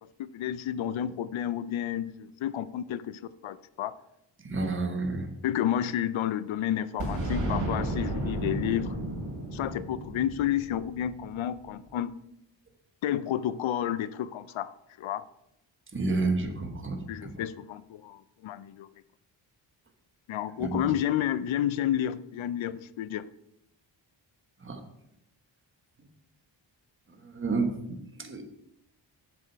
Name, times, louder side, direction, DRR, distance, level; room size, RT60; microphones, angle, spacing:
voice 1, 0.0-3.9 5.4-9.0 9.5-12.1 13.0-14.7 15.0-15.2 17.1-18.9 20.3-23.3, left 11 dB, 90° left, 15 dB, 0.6 m, -31 dB
voice 2, 4.4-5.3 15.9-17.3 20.6-20.8 24.6-24.8 27.1-28.4, right 3 dB, 25° right, 5 dB, 1.2 m, -30 dB
Boom, 7.0-11.7, right 1 dB, 50° right, 3.2 m, -33 dB
7.5 x 7.0 x 4.5 m, 0.82 s
wide cardioid pair, 110°, 46 cm